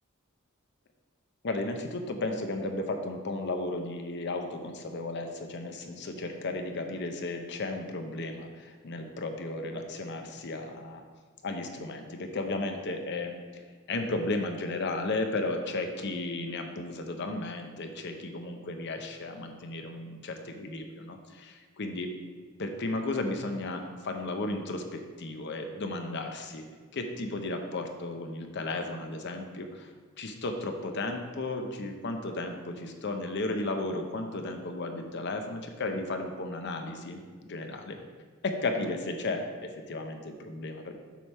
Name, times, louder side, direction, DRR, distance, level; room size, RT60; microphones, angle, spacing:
voice 1, 1.4-11.0 11.4-13.6 13.9-22.1 22.6-26.6 26.9-29.9 30.2-38.0 38.4-40.9, left 2 dB, 55° left, 5 dB, 0.7 m, -34 dB
7.5 x 3.4 x 5.4 m, 1.5 s
head